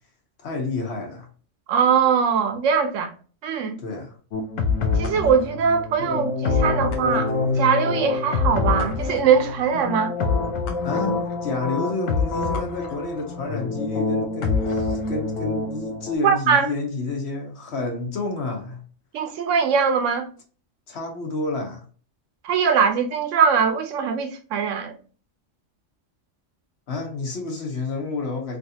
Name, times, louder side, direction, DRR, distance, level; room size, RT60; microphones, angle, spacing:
voice 1, 0.4-1.3 3.8-4.2 10.8-18.8 20.9-21.8 26.9-28.6, left 3 dB, 60° left, 1.2 m, -30 dB
voice 2, 1.7-3.1 3.4-3.8 5.0-10.1 16.2-16.7 19.1-20.3 22.4-25.0, right 6 dB, 80° right, 1.0 m, -21 dB
sound 1, 4.3-16.2, left 4 dB, 90° left, 1.0 m, -25 dB
3.2 x 2.6 x 2.7 m
omnidirectional pair, 1.3 m